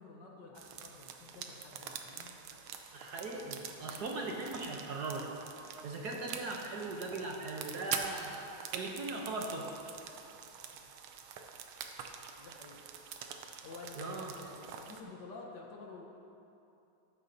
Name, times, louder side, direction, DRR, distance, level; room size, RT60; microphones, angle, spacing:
voice 1, 0.0-2.4 5.9-6.2 12.3-12.8 13.6-16.0, left 3 dB, 60° left, 0 dB, 1.6 m, -50 dB
sound 1, 0.5-15.0, right 7 dB, 85° right, 1.6 m, -45 dB
voice 2, 2.9-5.3 5.8-9.7 14.0-14.3, right 3 dB, 60° right, 0 dB, 1.3 m, -39 dB
13.5 x 11.0 x 2.8 m, 2.8 s
omnidirectional pair, 2.3 m